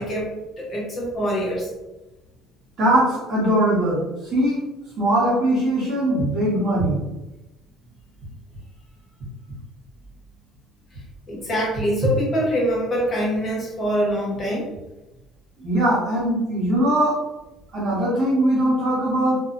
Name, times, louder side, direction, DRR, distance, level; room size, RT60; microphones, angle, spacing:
voice 1, 0.0-1.7 11.3-14.7, equal, 25° left, -3 dB, 0.7 m, -24 dB
voice 2, 2.8-4.0 4.3-4.6 5.0-7.0 15.6-17.2 17.7-19.4, right 1 dB, 45° right, -6 dB, 1.2 m, -20 dB
2.7 x 2.4 x 2.5 m, 1.0 s
cardioid pair, 160°, 0 cm